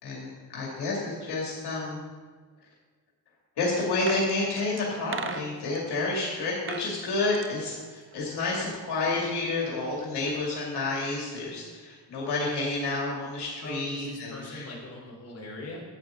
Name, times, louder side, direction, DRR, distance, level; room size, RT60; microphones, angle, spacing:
voice 1, 0.0-2.0 3.6-14.6, left 3 dB, 70° left, -4 dB, 2.5 m, -30 dB
sound 1, 3.8-5.8 6.5-6.9 7.2-8.6 8.8-8.9, right 6 dB, 30° right, 0.6 m, -38 dB
voice 2, 13.6-15.8, left 1 dB, 35° left, -4 dB, 3.4 m, -40 dB
11.5 x 8.7 x 3.7 m, 1.5 s
cardioid pair, 110°, 41 cm